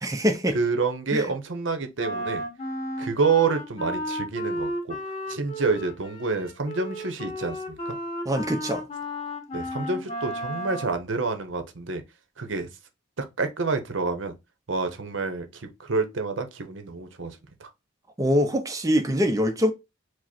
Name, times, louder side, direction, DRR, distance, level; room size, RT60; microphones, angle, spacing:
voice 1, 0.0-0.6 1.1-1.3 8.2-8.9 18.2-19.7, equal, 15° right, 0.6 m, -23 dB
voice 2, 0.5-2.4 3.0-5.0 5.3-8.0 9.5-12.0 12.4-12.7 13.2-14.3 14.7-17.7, right 4 dB, 70° right, 0.8 m, -28 dB
Wind instrument woodwind instrument, 2.0-11.0, equal, 30° left, 1.1 m, -33 dB
5.0 x 2.1 x 4.2 m
head